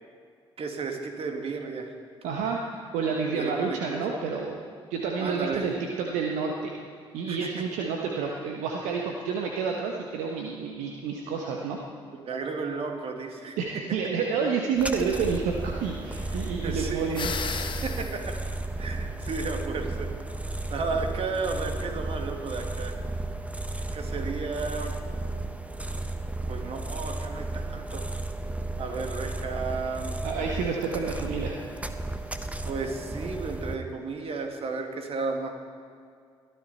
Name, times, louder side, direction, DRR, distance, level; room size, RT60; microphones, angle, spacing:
voice 1, 0.6-1.9 3.3-4.0 5.2-5.7 7.3-7.5 7.7-7.9 12.3-13.6 16.6-17.2 17.8-18.3 18.8-20.1 20.7-23.0 23.9-25.0 26.5-28.0 28.8-30.2 32.7-35.5, right 4 dB, 45° right, 4 dB, 2.2 m, -33 dB
voice 2, 2.2-6.7 7.1-11.8 13.6-17.3 30.2-31.6, right 5 dB, 65° right, 1 dB, 1.3 m, -29 dB
sound 1, 14.8-33.8, right 2 dB, 10° right, 1.2 m, -34 dB
sound 2, 17.1-18.2, left 5 dB, 35° left, 1.2 m, -33 dB
22.0 x 14.0 x 4.3 m, 2.3 s
figure-of-eight pair, 45°, 13 cm